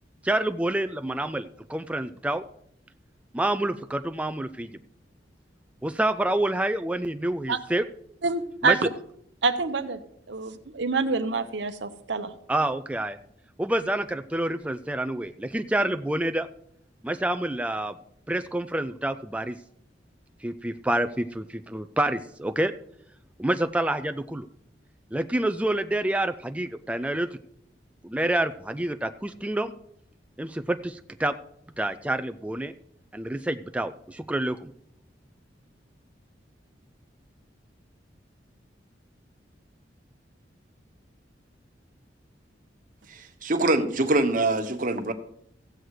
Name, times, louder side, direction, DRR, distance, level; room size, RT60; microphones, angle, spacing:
voice 1, 0.2-2.4 3.3-4.8 5.8-7.8 8.6-8.8 12.5-13.2 13.6-16.5 17.0-18.0 18.3-19.6 20.4-22.7 23.4-24.5 25.1-27.4 28.0-29.7 30.4-31.3 31.8-32.7 33.1-34.7, right 1 dB, 5° right, 0.3 m, -28 dB
voice 2, 8.2-8.8 9.4-10.0 10.3-12.3, right 4 dB, 75° right, 0.9 m, -26 dB
voice 3, 43.1-45.1, right 2 dB, 45° right, 1.2 m, -24 dB
15.0 x 7.9 x 4.8 m
head